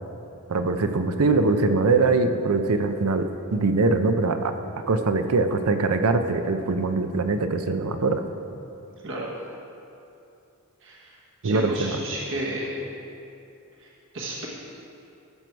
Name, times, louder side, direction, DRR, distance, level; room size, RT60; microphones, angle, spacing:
voice 1, 0.5-4.5 4.9-8.2 11.4-12.0, right 3 dB, 75° right, 8 dB, 0.6 m, -22 dB
voice 2, 10.8-11.2 11.4-12.7 13.8-14.5, right 1 dB, 60° right, -3 dB, 1.3 m, -32 dB
14.5 x 6.2 x 4.6 m, 2.8 s
head